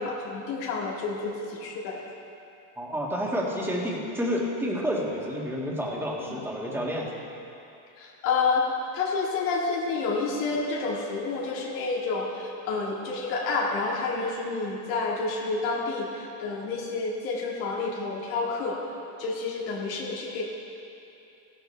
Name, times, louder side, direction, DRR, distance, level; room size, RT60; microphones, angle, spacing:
voice 1, 0.0-2.0 6.2-6.4 8.0-8.6 8.9-18.8 19.2-20.4, left 4 dB, 75° left, -3 dB, 2.1 m, -29 dB
voice 2, 2.8-7.1, equal, 5° right, -4 dB, 1.9 m, -29 dB
15.0 x 12.5 x 3.4 m, 2.7 s
supercardioid pair, 125°, 49 cm